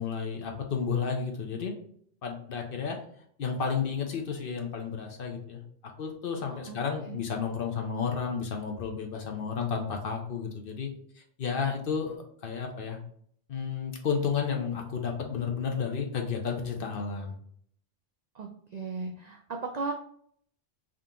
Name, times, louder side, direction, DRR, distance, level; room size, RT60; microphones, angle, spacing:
voice 1, 0.0-1.7 2.2-3.0 3.4-5.6 6.0-10.9 11.4-13.0 13.5-17.3, left 6 dB, 55° left, 2 dB, 0.8 m, -32 dB
voice 2, 18.4-19.9, right 4 dB, 65° right, 2 dB, 0.4 m, -36 dB
3.7 x 2.8 x 3.6 m, 0.63 s
omnidirectional pair, 1.2 m